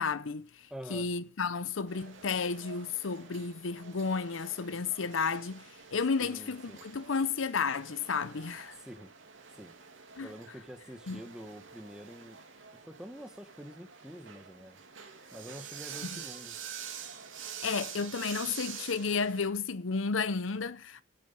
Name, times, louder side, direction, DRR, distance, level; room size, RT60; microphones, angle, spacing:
voice 1, 0.0-8.8 10.2-10.3 11.1-11.2 16.0-16.1 17.4-21.0, left 5 dB, 80° left, 0.7 m, -32 dB
voice 2, 0.7-1.1 6.2-6.8 8.8-9.1 9.5-9.7 10.2-12.4 12.8-14.8 15.3-16.6, equal, 5° right, 1.7 m, -47 dB
sound 1, 1.9-19.5, right 7 dB, 75° right, 2.7 m, -47 dB
12.5 x 11.5 x 5.4 m
head